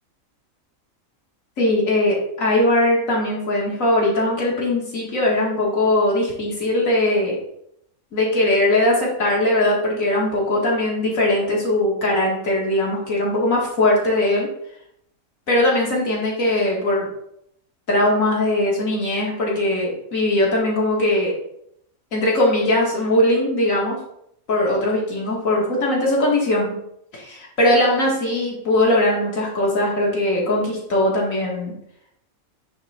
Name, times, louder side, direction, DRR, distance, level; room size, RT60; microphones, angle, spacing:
voice 1, 1.6-7.4 8.1-14.5 15.5-17.1 17.9-21.3 22.1-24.0 24.5-26.8 27.1-31.7, left 1 dB, 70° left, -3 dB, 2.4 m, -20 dB
9.3 x 3.4 x 4.3 m, 0.75 s
omnidirectional pair, 1.4 m